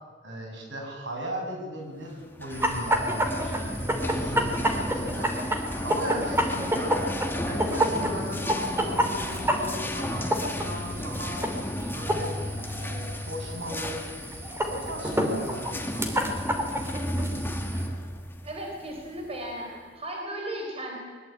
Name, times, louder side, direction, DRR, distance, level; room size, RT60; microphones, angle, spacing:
voice 1, 0.2-7.0 7.4-11.4 11.9-12.4 12.8-14.0 14.6-16.4, equal, 70° right, 2 dB, 7.2 m, -37 dB
sound 1, 2.2-19.6, left 1 dB, 10° left, 1.9 m, -35 dB
sound 2, 2.5-17.9, equal, 15° right, 3.2 m, -29 dB
voice 2, 18.4-21.0, right 1 dB, 35° right, 1 dB, 4.1 m, -36 dB
22.0 x 22.0 x 9.0 m, 1.4 s
head